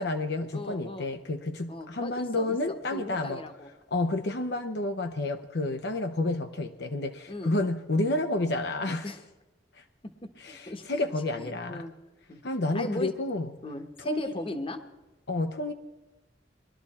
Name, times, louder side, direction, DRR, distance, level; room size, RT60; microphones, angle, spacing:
voice 1, 0.0-3.4 3.9-9.1 9.8-9.9 10.4-11.8 12.4-13.5 14.0-14.4 15.3-15.7, left 2 dB, 65° left, 0.8 m, -30 dB
voice 2, 0.5-1.1 1.7-3.7 3.9-4.1 7.3-7.6 9.0-9.2 10.0-11.1 11.4-11.9 12.3-12.4 12.7-13.1 13.6-14.8 15.3-15.5, left 1 dB, 30° left, 1.2 m, -38 dB
21.0 x 12.5 x 4.3 m
head